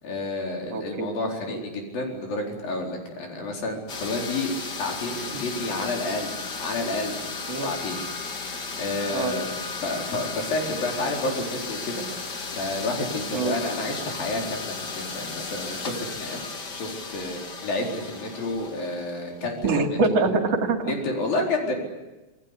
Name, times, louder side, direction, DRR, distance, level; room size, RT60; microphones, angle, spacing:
voice 1, 0.0-6.3 6.6-7.2 7.5-8.0 8.8-9.5 9.8-12.0 12.5-16.4 16.7-19.6 20.9-21.7, left 2 dB, 75° left, 1 dB, 6.0 m, -30 dB
voice 2, 0.7-1.1 1.5-1.6 7.5-7.7 9.1-9.3 13.3-13.5 19.6-20.9, right 3 dB, 45° right, 4 dB, 3.4 m, -24 dB
sound 1, 3.9-19.6, left 4 dB, 35° left, 2.0 m, -35 dB
27.0 x 20.0 x 9.9 m, 1.1 s
omnidirectional pair, 4.1 m